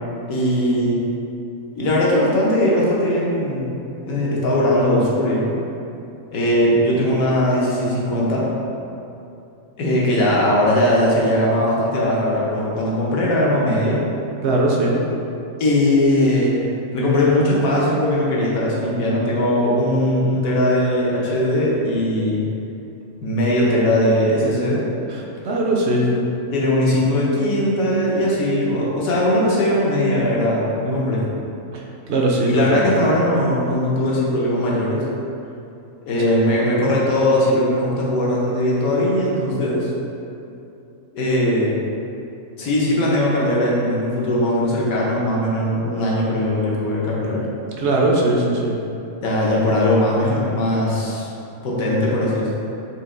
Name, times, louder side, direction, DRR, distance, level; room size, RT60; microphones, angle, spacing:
voice 1, 0.3-1.0 1.7-3.7 4.0-5.5 6.3-8.5 9.8-14.0 15.6-22.5 23.2-24.8 26.5-31.2 32.5-35.0 36.1-39.9 41.1-41.8 42.6-47.4 49.2-51.3 51.6-52.5, left 1 dB, 75° left, -5 dB, 1.3 m, -19 dB
voice 2, 14.4-15.0 25.1-26.3 31.7-31.8 32.1-32.9 36.2-36.4 47.6-48.8, right 2 dB, 65° right, -2 dB, 0.7 m, -20 dB
4.4 x 2.9 x 3.7 m, 2.7 s
omnidirectional pair, 1.5 m